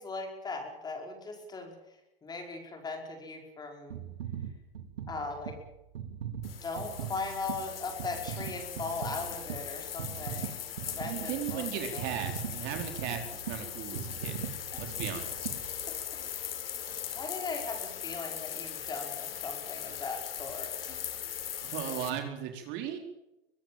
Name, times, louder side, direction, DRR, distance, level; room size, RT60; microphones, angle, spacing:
voice 1, 0.0-4.0 5.1-5.6 6.6-10.6 10.8-12.6 14.7-14.8 16.2-16.6 17.1-21.1, left 3 dB, 15° left, 3 dB, 5.1 m, -39 dB
sound 1, 3.9-16.3 16.9-17.0, right 8 dB, 75° right, 3.8 m, -41 dB
sound 2, 6.4-22.1, left 9 dB, 75° left, 4.2 m, -39 dB
voice 2, 11.0-14.4 14.8-15.5 21.6-23.0, right 10 dB, 40° right, 5 dB, 4.4 m, -37 dB
23.5 x 20.0 x 7.4 m, 0.93 s
hypercardioid pair, 135°, 29 cm